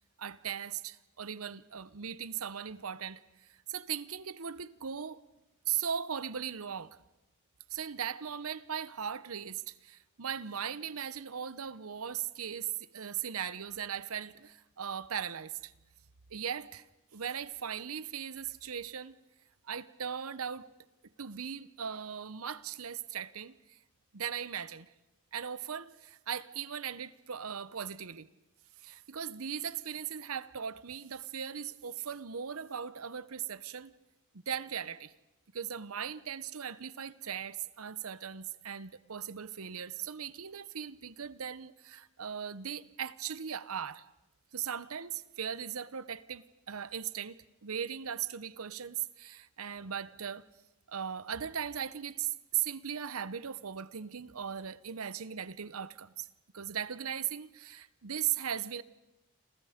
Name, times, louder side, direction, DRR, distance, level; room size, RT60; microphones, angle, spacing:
voice 1, 0.2-5.2 5.7-7.0 7.7-15.7 16.3-16.9 17.1-19.2 19.7-20.7 21.2-23.8 24.1-24.9 25.3-28.3 28.8-33.9 34.5-35.1 35.5-44.0 44.5-47.4 47.6-50.4 50.9-56.3 56.5-58.8, right 8 dB, 80° right, 0.9 m, -38 dB
28.5 x 27.0 x 5.1 m
head